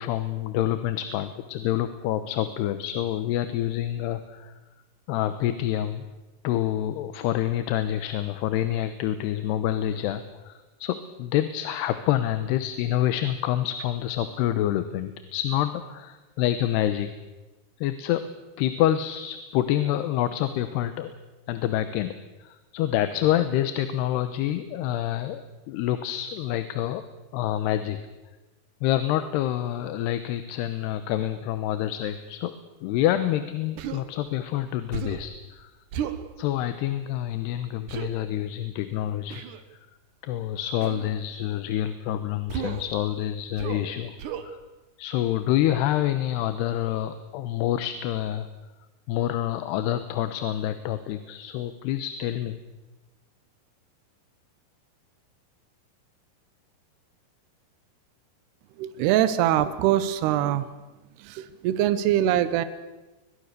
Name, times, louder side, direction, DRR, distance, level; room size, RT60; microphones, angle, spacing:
voice 1, 0.0-4.5 5.1-6.1 6.4-17.1 17.8-18.2 18.6-21.1 21.5-27.0 27.3-28.0 28.8-32.5 32.8-35.7 36.4-39.4 40.2-44.1 44.4-44.6 45.0-48.5 49.1-52.6, left 12 dB, 90° left, 11 dB, 3.0 m, -27 dB
Human voice, 33.8-34.0 34.9-35.3 35.9-36.2 37.9-38.1 39.3-39.6 40.8-41.1 42.5-42.9 43.6-43.9 44.2-44.5, right 9 dB, 65° right, 2.4 m, -33 dB
voice 2, 58.8-60.6 61.3-62.7, right 12 dB, 85° right, 13 dB, 2.9 m, -23 dB
22.5 x 21.5 x 6.7 m, 1.1 s
omnidirectional pair, 4.6 m